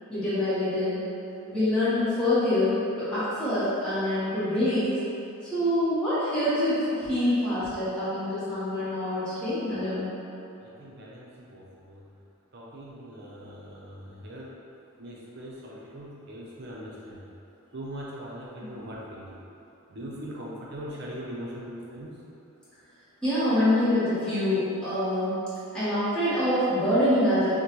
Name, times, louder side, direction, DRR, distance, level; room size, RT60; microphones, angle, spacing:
voice 1, 0.1-1.1 1.5-4.9 5.4-10.1 18.6-18.7 23.2-25.4 25.7-27.5, left 1 dB, 5° left, -14 dB, 1.2 m, -25 dB
voice 2, 10.6-12.0 12.5-14.6 15.0-17.2 17.7-19.4 19.9-22.1, equal, 50° right, -4 dB, 0.7 m, -41 dB
6.4 x 2.2 x 3.1 m, 2.8 s
head